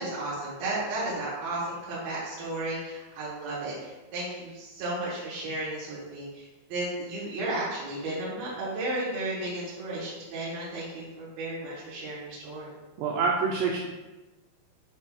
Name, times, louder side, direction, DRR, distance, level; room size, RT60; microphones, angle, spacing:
voice 1, 0.0-12.7, right 2 dB, 65° right, -9 dB, 2.8 m, -34 dB
voice 2, 13.0-13.8, right 5 dB, 85° right, -2 dB, 2.4 m, -26 dB
8.4 x 5.3 x 2.4 m, 1.1 s
omnidirectional pair, 5.5 m